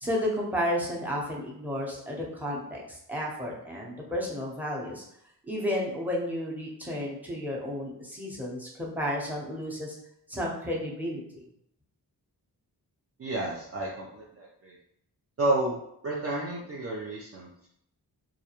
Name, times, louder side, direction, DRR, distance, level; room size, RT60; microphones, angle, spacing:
voice 1, 0.0-5.0 5.5-9.9 10.3-11.4, equal, 5° right, -4 dB, 0.8 m, -32 dB
voice 2, 13.2-14.8 15.4-15.8 16.0-17.7, right 2 dB, 35° right, -3 dB, 0.5 m, -31 dB
2.4 x 2.1 x 3.0 m, 0.73 s
cardioid pair, 45°, 41 cm